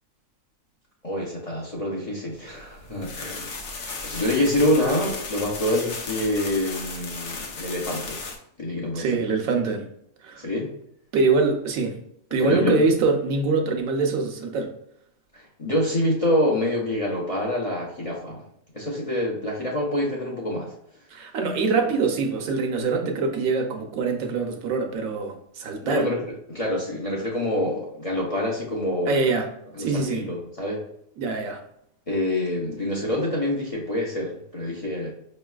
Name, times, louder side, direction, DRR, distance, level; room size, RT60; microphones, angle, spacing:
voice 1, 1.0-3.6 4.0-8.2 8.6-9.2 10.4-10.7 12.4-12.9 15.3-18.4 18.7-20.7 25.8-26.2 26.5-29.2 29.7-30.8 32.1-35.1, left 1 dB, 35° left, -3 dB, 0.6 m, -26 dB
sound 1, 2.6-8.4, left 4 dB, 60° left, 1.0 m, -35 dB
voice 2, 9.0-9.8 10.2-10.4 11.1-12.0 12.3-14.7 21.1-26.1 29.1-29.5 29.8-30.2 31.2-31.6, right 4 dB, 80° right, 4 dB, 1.1 m, -24 dB
5.3 x 3.1 x 2.3 m, 0.72 s
omnidirectional pair, 1.5 m